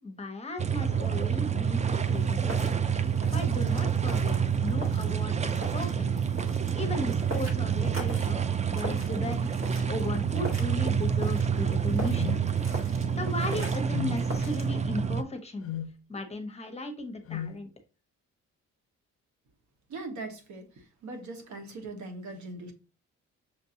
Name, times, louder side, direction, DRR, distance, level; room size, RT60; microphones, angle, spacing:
voice 1, 0.0-2.7 3.3-6.1 6.7-9.4 9.9-12.4 13.2-15.7 16.1-17.7, left 2 dB, 20° left, 1.0 m, -36 dB
sound 1, 0.6-15.2, right 7 dB, 25° right, 0.4 m, -28 dB
sound 2, 1.9-14.7, right 1 dB, 45° right, 1.4 m, -43 dB
sound 3, 12.2-12.4 13.9-14.2 15.6-15.9 17.3-17.6, left 10 dB, 50° left, 0.5 m, -35 dB
voice 2, 19.9-22.7, right 2 dB, 70° right, 1.2 m, -40 dB
6.4 x 2.6 x 2.7 m
cardioid pair, 90°, 30 cm